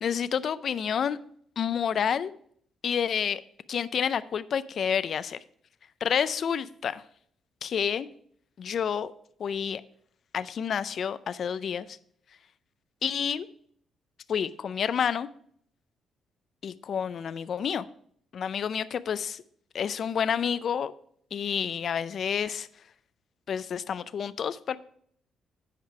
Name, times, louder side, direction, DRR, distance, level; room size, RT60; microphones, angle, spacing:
voice 1, 0.0-1.2 1.6-2.3 2.8-3.4 3.7-5.4 6.0-7.0 7.6-8.1 8.6-9.1 9.4-9.8 10.3-12.0 13.0-13.5 14.3-15.3 16.6-17.9 18.3-19.4 19.7-20.9 21.3-22.7 23.5-24.8, left 7 dB, 55° left, 15 dB, 0.4 m, -29 dB
9.5 x 5.1 x 4.7 m, 0.64 s
cardioid pair, 90°, 0 cm